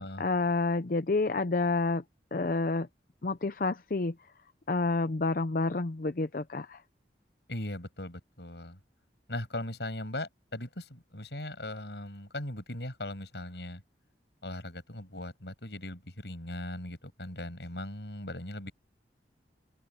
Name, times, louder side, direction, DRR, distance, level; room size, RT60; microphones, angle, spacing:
voice 1, 0.2-2.0 2.3-2.9 3.2-4.3 4.7-6.8, left 3 dB, 50° left, 0.6 m, -29 dB
voice 2, 7.5-8.8 9.3-13.8 14.4-18.7, left 1 dB, 70° left, 7.5 m, -39 dB
open air
head